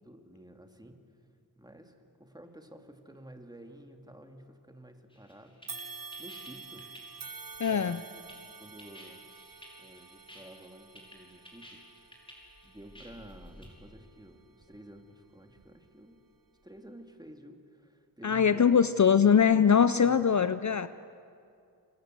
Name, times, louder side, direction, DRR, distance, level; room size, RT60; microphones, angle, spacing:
voice 1, 0.0-1.0 1.6-6.9 7.6-8.2 8.6-9.3 9.8-11.8 12.6-16.2 16.6-18.9 20.0-20.2, right 1 dB, 10° right, 4 dB, 2.5 m, -51 dB
sound 1, 5.1-13.7, equal, 15° left, 5.3 m, -53 dB
sound 2, 5.7-15.0 15.5-15.7 16.6-16.7, right 5 dB, 55° right, 1.5 m, -48 dB
voice 2, 7.6-8.0 18.2-20.9, left 7 dB, 50° left, 13 dB, 0.6 m, -22 dB
28.5 x 27.0 x 7.7 m, 2.5 s
wide cardioid pair, 100°, 39 cm